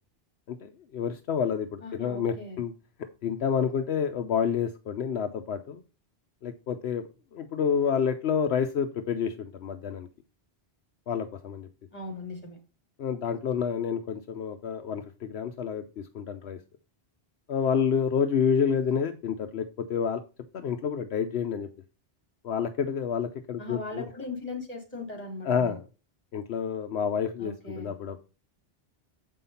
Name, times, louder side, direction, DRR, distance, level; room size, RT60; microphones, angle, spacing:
voice 1, 0.5-2.7 3.2-5.8 6.4-7.0 7.3-10.1 11.1-11.7 13.0-16.6 17.5-20.2 20.5-21.7 22.4-24.0 25.5-25.8 26.3-28.2, left 7 dB, 80° left, 6 dB, 1.0 m, -29 dB
voice 2, 1.8-2.6 11.9-12.6 23.6-25.7 27.4-27.9, left 3 dB, 35° left, 1 dB, 3.1 m, -38 dB
7.6 x 5.5 x 5.5 m, 0.32 s
omnidirectional pair, 1.1 m